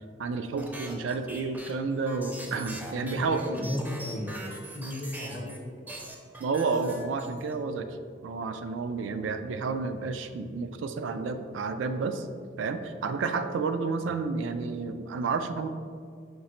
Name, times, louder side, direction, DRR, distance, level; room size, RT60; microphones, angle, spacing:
voice 1, 0.2-3.4 6.4-8.0 8.2-12.3 12.6-15.7, right 4 dB, 90° right, 8 dB, 0.3 m, -30 dB
sound 1, 0.6-5.6 5.9-7.5, right 1 dB, 10° right, 0.5 m, -42 dB
voice 2, 3.0-5.9 9.0-9.3 13.9-14.1, left 1 dB, 40° left, 0 dB, 0.6 m, -36 dB
5.2 x 3.1 x 2.9 m, 2.2 s
head